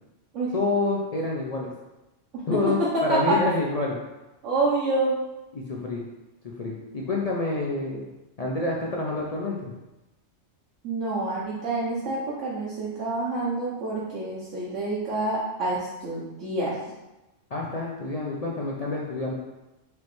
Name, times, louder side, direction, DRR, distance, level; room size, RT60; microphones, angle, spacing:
voice 1, 0.5-1.7 2.5-4.0 5.5-6.0 6.4-8.1 8.4-9.7 17.5-19.3, left 2 dB, 55° left, -2 dB, 0.4 m, -28 dB
voice 2, 4.4-5.2 10.8-16.8, right 2 dB, 75° right, -7 dB, 1.1 m, -27 dB
4.8 x 3.1 x 3.0 m, 1.0 s
omnidirectional pair, 1.3 m